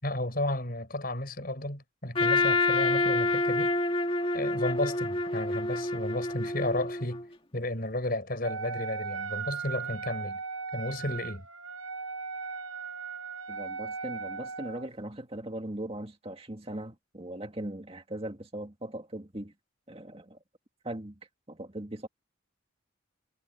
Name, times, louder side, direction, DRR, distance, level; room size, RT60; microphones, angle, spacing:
voice 1, 0.0-3.7 4.3-7.2 7.5-10.4 10.7-11.5, left 1 dB, 45° left, 5.5 m, -33 dB
Trumpet, 2.1-7.2, left 2 dB, 25° left, 2.1 m, -27 dB
Wind instrument woodwind instrument, 8.4-14.9, right 5 dB, 75° right, 1.1 m, -37 dB
voice 2, 13.5-19.5 19.9-20.4 20.8-21.2 21.5-22.1, right 1 dB, 30° right, 2.2 m, -39 dB
head